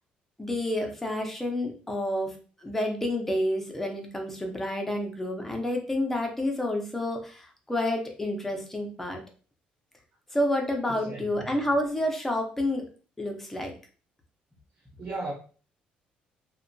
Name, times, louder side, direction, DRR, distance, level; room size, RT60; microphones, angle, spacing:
voice 1, 0.4-2.3 2.6-9.2 10.3-12.8 13.2-13.7, left 1 dB, 10° left, 0.6 m, -29 dB
voice 2, 10.9-11.5 15.0-15.3, right 2 dB, 45° right, 0.8 m, -36 dB
2.7 x 2.1 x 2.6 m
cardioid pair, 140°, 3 cm